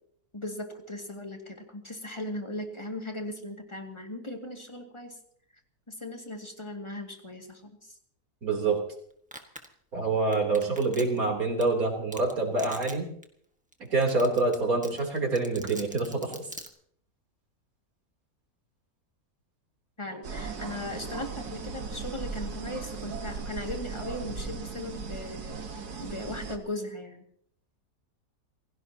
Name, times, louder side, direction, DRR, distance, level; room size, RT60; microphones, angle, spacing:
voice 1, 0.3-5.2 5.9-8.0 10.5-10.8 20.0-25.6 26.0-27.2, left 1 dB, 20° left, 2 dB, 2.3 m, -38 dB
voice 2, 8.4-8.8 9.9-13.1 13.9-16.3, right 3 dB, 65° right, 0 dB, 4.0 m, -26 dB
Domestic sounds home sounds, 9.3-9.7 10.3-11.2 11.6-11.7 12.1-12.3 12.6-12.9 13.2-13.3 13.7-13.8 14.0-14.5 14.8-16.7, right 1 dB, 5° right, 1.6 m, -41 dB
sound 1, 20.2-26.6, right 4 dB, 85° right, 2.1 m, -37 dB
28.0 x 17.0 x 2.9 m, 0.65 s
omnidirectional pair, 1.6 m